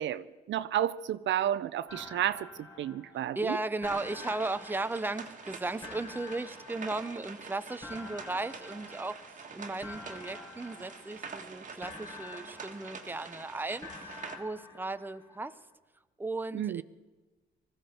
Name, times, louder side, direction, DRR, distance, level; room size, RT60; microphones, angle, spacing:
voice 1, 0.0-2.5 2.8-3.6 16.5-16.8, right 11 dB, 70° right, 0.6 m, -31 dB
sound 1, 1.9-3.5 3.8-5.5 5.8-7.4 7.8-9.5 9.8-11.5 11.8-13.4 13.8-15.4, left 3 dB, 20° left, 4.4 m, -49 dB
voice 2, 3.3-9.2 9.5-15.6 16.2-16.8, right 2 dB, 10° right, 0.7 m, -36 dB
sound 2, 3.8-14.4, right 5 dB, 40° right, 1.7 m, -46 dB
20.0 x 15.0 x 4.4 m
cardioid pair, 90°, 20 cm